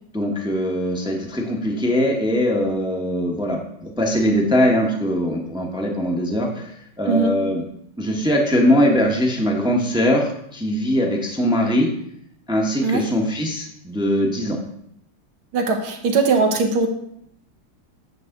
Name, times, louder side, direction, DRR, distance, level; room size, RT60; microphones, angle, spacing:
voice 1, 0.1-6.6 7.0-7.6 8.0-11.9 12.5-14.6, equal, 5° right, 0 dB, 0.7 m, -21 dB
voice 2, 7.1-7.4 12.8-13.1 15.5-16.9, right 4 dB, 80° right, 4 dB, 1.9 m, -20 dB
9.5 x 3.5 x 6.5 m, 0.73 s
omnidirectional pair, 2.2 m